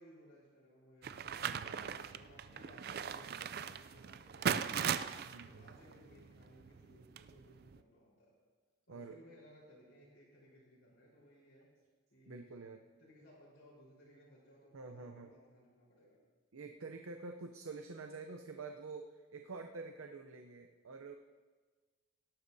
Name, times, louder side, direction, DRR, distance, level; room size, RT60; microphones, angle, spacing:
voice 1, 0.0-1.4 1.8-4.9 5.4-8.3 8.9-11.7 12.1-12.4 13.0-16.2, equal, 60° left, -9 dB, 4.3 m, -62 dB
sound 1, 1.0-7.8, right 7 dB, 45° right, 0.4 m, -39 dB
voice 2, 1.4-2.0 5.3-5.7 8.9-9.2 12.3-12.8 14.7-15.3 16.5-21.2, right 4 dB, 85° right, 5 dB, 0.7 m, -48 dB
18.0 x 12.5 x 2.7 m, 1.4 s
head